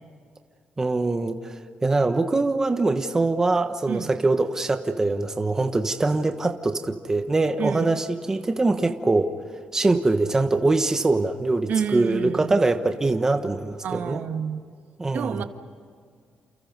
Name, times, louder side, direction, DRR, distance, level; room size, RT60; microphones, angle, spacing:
voice 1, 0.8-9.3 9.7-14.2 15.0-15.4, right 2 dB, 15° right, 7 dB, 1.2 m, -23 dB
voice 2, 7.6-8.0 11.7-12.6 13.8-14.6 15.1-15.4, right 7 dB, 65° right, 8 dB, 1.6 m, -29 dB
30.0 x 29.0 x 5.3 m, 2.1 s
cardioid pair, 145°, 3 cm